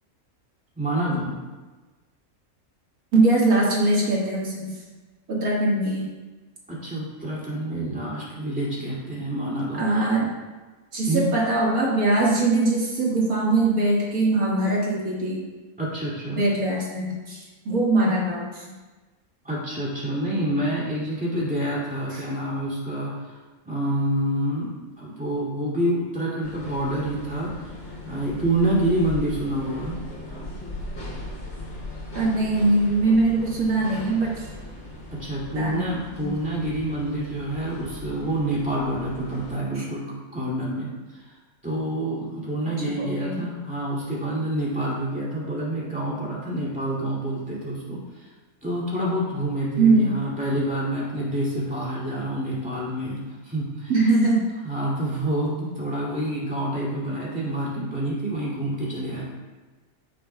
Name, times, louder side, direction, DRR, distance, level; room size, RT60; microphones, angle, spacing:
voice 1, 0.8-1.4 6.7-10.3 11.1-11.2 15.8-16.4 19.4-23.3 23.6-27.5 27.8-30.0 35.1-41.4 41.6-48.3 48.6-53.9 54.6-59.2, right 1 dB, 5° right, -7 dB, 2.5 m, -27 dB
voice 2, 3.1-4.7 5.3-6.1 9.7-10.3 10.9-15.4 16.3-18.7 22.1-22.2 32.1-34.5 35.5-35.9 36.2-36.3 39.8-39.9 42.8-43.5 49.8-50.2 53.9-54.4, right 2 dB, 80° right, -4 dB, 2.3 m, -22 dB
sound 1, 26.4-39.6, left 1 dB, 50° left, 3.1 m, -38 dB
14.5 x 6.4 x 2.3 m, 1.2 s
omnidirectional pair, 1.5 m